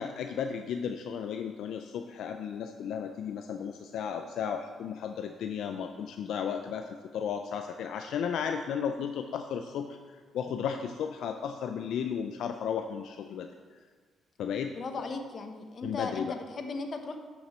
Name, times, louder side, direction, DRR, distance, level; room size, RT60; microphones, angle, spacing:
voice 1, 0.0-9.9 10.3-13.5 14.4-15.0 15.8-16.4, left 7 dB, 75° left, 6 dB, 0.4 m, -34 dB
voice 2, 14.8-17.2, left 3 dB, 50° left, 6 dB, 1.0 m, -37 dB
9.7 x 5.9 x 4.3 m, 1.5 s
cardioid pair, 90°, 0 cm